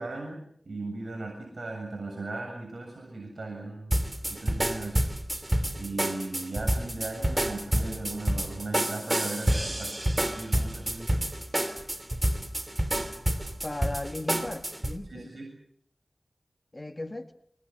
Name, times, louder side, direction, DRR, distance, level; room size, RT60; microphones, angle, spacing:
voice 1, 0.0-4.0 4.3-5.1 5.8-11.3 15.1-15.5, right 2 dB, 70° right, 7.3 m, -37 dB
sound 1, 3.9-15.0, right 1 dB, 25° right, 2.9 m, -29 dB
voice 2, 13.6-15.3 16.7-17.3, left 2 dB, 35° left, 2.0 m, -36 dB
27.0 x 20.5 x 7.7 m
wide cardioid pair, 50°, 0 cm